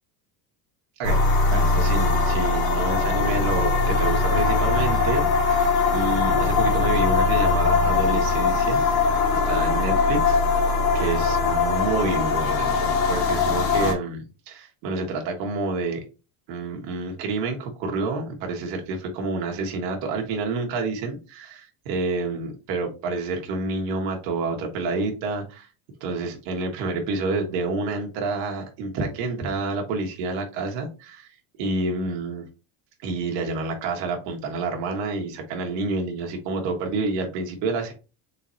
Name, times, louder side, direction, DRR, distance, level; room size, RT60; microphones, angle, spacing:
sound 1, 1.0-13.9, left 4 dB, 85° left, 1.6 m, -21 dB
voice 1, 1.5-8.8 9.3-16.0 16.5-25.7 26.0-31.3 31.6-32.4 33.0-37.9, right 3 dB, 75° right, 2 dB, 1.4 m, -28 dB
4.4 x 3.8 x 2.7 m, 0.32 s
cardioid pair, 150°, 44 cm